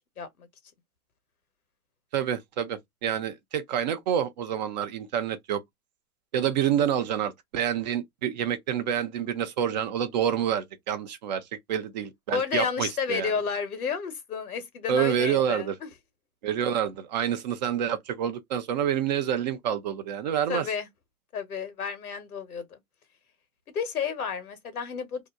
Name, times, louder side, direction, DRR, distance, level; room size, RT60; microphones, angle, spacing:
voice 1, 0.2-0.5 12.3-15.9 20.5-20.9 21.3-22.8 23.7-25.2, left 6 dB, 80° left, 1.1 m, -31 dB
voice 2, 2.1-5.6 6.3-13.3 14.9-15.8 16.4-20.7, right 9 dB, 30° right, 0.4 m, -28 dB
2.7 x 2.1 x 3.5 m
hypercardioid pair, 120°, 43 cm